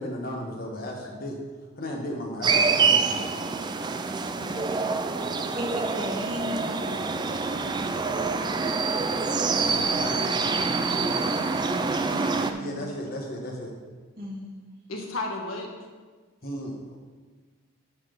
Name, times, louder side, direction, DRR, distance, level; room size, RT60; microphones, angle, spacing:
voice 1, 0.0-1.4 1.8-3.4 9.6-10.4 12.6-13.7 16.4-17.0, equal, 45° left, 0 dB, 1.3 m, -35 dB
sound 1, 2.4-12.5, right 4 dB, 20° right, 0.3 m, -26 dB
voice 2, 4.4-5.4 6.9-7.0 11.2-11.3 11.9-12.5 14.9-15.7, left 2 dB, 80° left, 1 dB, 1.4 m, -37 dB
voice 3, 5.5-7.9 12.0-12.8 14.2-14.6, equal, 45° right, -4 dB, 1.6 m, -36 dB
11.5 x 4.1 x 5.2 m, 1.4 s
head